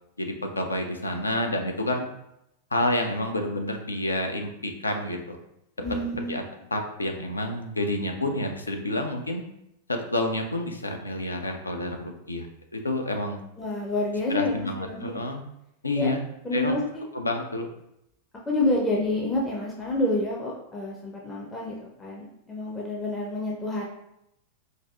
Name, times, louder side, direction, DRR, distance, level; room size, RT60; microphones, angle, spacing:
voice 1, 0.2-2.1 2.7-5.4 6.3-6.4 6.7-9.4 9.9-12.5 12.7-13.4 14.3-15.4 15.8-16.2 16.5-16.7 17.1-17.7, left 1 dB, 80° left, 4 dB, 0.4 m, -29 dB
voice 2, 5.8-6.4 13.6-15.3 15.9-16.1 16.4-17.0 18.5-23.8, left 1 dB, 15° left, -3 dB, 0.5 m, -28 dB
4.0 x 2.4 x 2.3 m, 0.82 s
figure-of-eight pair, 90°, 0 cm